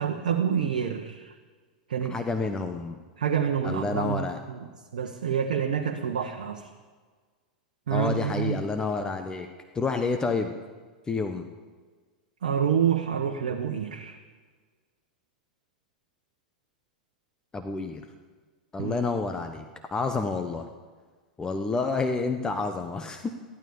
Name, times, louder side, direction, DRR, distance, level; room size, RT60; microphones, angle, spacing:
voice 1, 0.0-1.3 1.9-2.2 3.2-4.7 4.9-6.7 7.9-8.6 12.4-14.2 18.8-18.9, right 8 dB, 70° right, 4 dB, 1.1 m, -27 dB
voice 2, 2.1-3.0 3.6-4.4 7.9-9.5 9.7-10.5 11.1-11.4 17.5-18.1 18.7-19.7 19.9-20.6 21.4-23.3, left 4 dB, 15° left, 6 dB, 1.1 m, -29 dB
15.0 x 12.5 x 7.0 m, 1.5 s
figure-of-eight pair, 90°, 4 cm